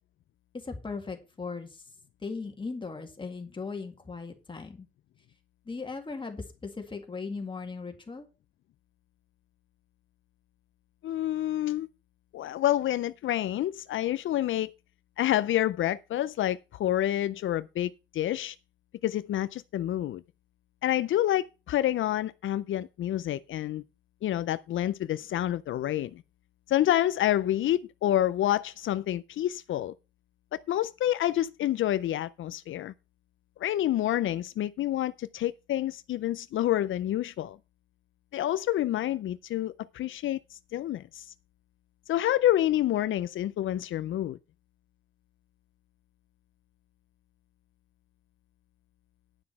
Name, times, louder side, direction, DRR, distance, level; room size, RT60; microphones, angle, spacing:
voice 1, 0.6-1.8 2.2-4.9 5.7-8.3, left 4 dB, 25° left, 2.0 m, -38 dB
voice 2, 11.0-11.9 12.3-14.7 15.2-18.6 19.0-20.2 20.8-23.8 24.2-26.2 26.7-29.9 30.5-32.9 33.6-37.6 38.3-41.3 42.1-44.4, left 13 dB, 80° left, 0.4 m, -28 dB
9.8 x 6.0 x 5.7 m
wide cardioid pair, 135°, 20 cm